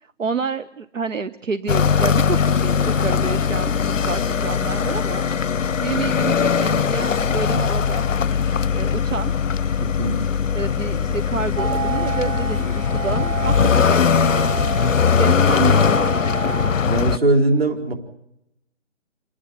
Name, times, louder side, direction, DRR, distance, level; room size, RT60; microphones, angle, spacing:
voice 1, 0.0-5.2 5.8-8.1 8.7-9.3 10.5-14.6 15.1-16.0, right 5 dB, 85° right, 12 dB, 1.1 m, -29 dB
sound 1, 1.7-17.2, left 6 dB, 90° left, 0.7 m, -20 dB
voice 2, 9.8-10.2 16.8-17.9, right 2 dB, 50° right, 3 dB, 4.5 m, -20 dB
sound 2, 11.6-16.7, right 6 dB, 15° right, 1.1 m, -29 dB
29.5 x 10.0 x 9.6 m, 0.83 s
figure-of-eight pair, 175°, 37 cm